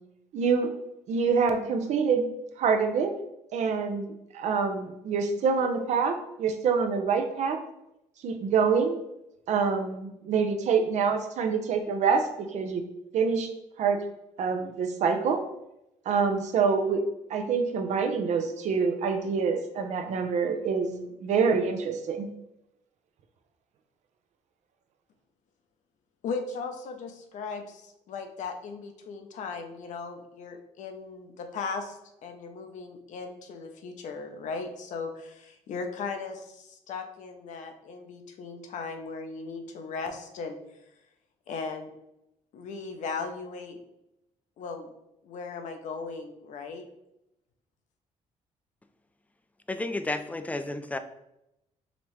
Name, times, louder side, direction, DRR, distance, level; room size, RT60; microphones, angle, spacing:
voice 1, 0.3-0.7 1.1-2.3 2.6-3.1 3.5-7.6 8.2-9.0 9.5-12.8 13.1-13.5 13.8-14.0 14.4-15.4 16.1-17.0 17.3-22.3, right 5 dB, 65° right, 6 dB, 0.6 m, -26 dB
voice 2, 26.2-40.6 41.5-41.9 42.5-43.8 44.6-44.9 45.2-46.8, left 4 dB, 70° left, 5 dB, 0.7 m, -37 dB
voice 3, 49.7-51.0, left 2 dB, 10° left, 9 dB, 0.3 m, -32 dB
5.2 x 3.0 x 3.1 m, 0.85 s
cardioid pair, 105°, 13 cm